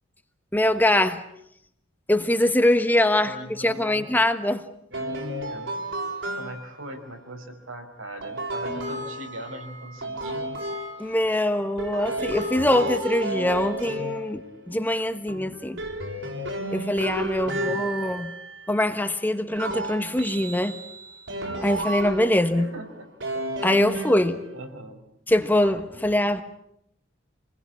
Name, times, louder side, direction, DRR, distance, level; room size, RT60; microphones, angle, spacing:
voice 1, 0.5-1.2 2.1-4.6 11.0-15.8 16.7-18.3 18.7-20.7 21.6-22.7 23.6-24.4 25.3-26.4, left 1 dB, 10° left, 8 dB, 1.3 m, -23 dB
voice 2, 3.2-4.1 4.9-5.8 6.3-10.5 11.0-11.1 17.4-17.9 22.4-23.1 23.9-24.1 24.5-25.0, right 1 dB, 80° right, 4 dB, 5.4 m, -40 dB
sound 1, 4.9-6.9 8.2-11.4 11.8-14.8 15.3-18.8 19.5-22.6 23.2-24.7, right 1 dB, 65° right, 6.3 m, -32 dB
28.0 x 20.5 x 8.7 m, 0.76 s
head